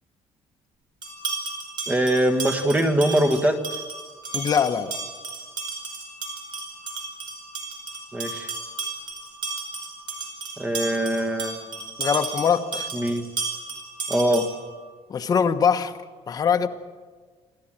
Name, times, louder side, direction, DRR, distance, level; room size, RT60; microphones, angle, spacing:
sound 1, 1.0-14.7, right 3 dB, 40° right, 4.9 m, -34 dB
voice 1, 1.9-3.8 8.1-8.5 10.6-11.8 12.9-13.3 14.1-14.5, right 1 dB, 15° right, 7 dB, 1.6 m, -23 dB
voice 2, 4.3-5.0 12.0-12.9 15.1-16.0 16.3-16.7, left 7 dB, 35° left, 7 dB, 1.2 m, -22 dB
28.0 x 13.0 x 8.9 m, 1.5 s
cardioid pair, 140°, 11 cm